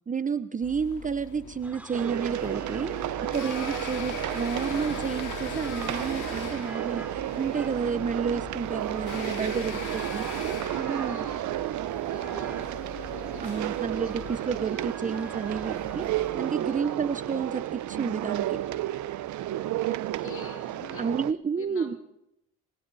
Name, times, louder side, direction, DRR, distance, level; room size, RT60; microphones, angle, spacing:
voice 1, 0.1-10.3 10.8-11.3 13.4-16.1 16.3-18.6 21.0-22.0, right 6 dB, 25° right, 13 dB, 0.9 m, -31 dB
sound 1, 0.6-16.3, left 8 dB, 85° left, 3.7 m, -42 dB
sound 2, 1.6-21.2, right 1 dB, 5° right, 3.4 m, -47 dB
sound 3, 1.9-21.3, right 14 dB, 70° right, 0.8 m, -32 dB
voice 2, 3.9-4.4 9.6-10.2 10.5-14.9 15.1-15.2 15.5-15.9 16.6-16.9 17.4-17.7 19.7-21.1 21.5-22.0, left 5 dB, 45° left, 3 dB, 4.3 m, -48 dB
27.5 x 24.0 x 4.2 m, 0.80 s
cardioid pair, 115°, 30 cm